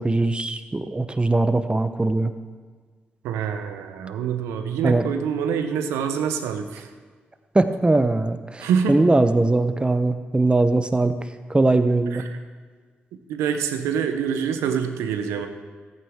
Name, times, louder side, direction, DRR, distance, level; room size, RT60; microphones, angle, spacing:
voice 1, 0.0-2.3 4.8-5.1 7.5-11.1 11.5-12.2, right 2 dB, 20° right, 10 dB, 0.9 m, -21 dB
voice 2, 3.2-6.9 8.6-9.0 12.1-12.4 13.3-15.5, right 7 dB, 85° right, 7 dB, 0.8 m, -26 dB
14.0 x 8.8 x 3.6 m, 1.5 s
hypercardioid pair, 45°, 5 cm